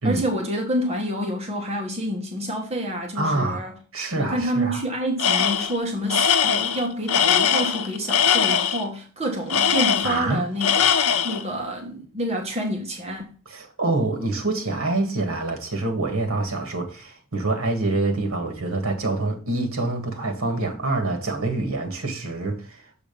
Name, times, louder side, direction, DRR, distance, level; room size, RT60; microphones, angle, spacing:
voice 1, 0.0-3.7 4.2-10.9 11.2-13.3, equal, 30° right, 1.2 m, -28 dB
voice 2, 3.2-3.6 3.9-4.8 10.0-10.5 13.4-22.8, right 2 dB, 65° right, 1.7 m, -26 dB
Tools, 5.2-5.8 6.1-8.8 9.5-10.3 10.6-11.4, left 7 dB, 80° left, 0.6 m, -21 dB
7.0 x 3.9 x 5.1 m
head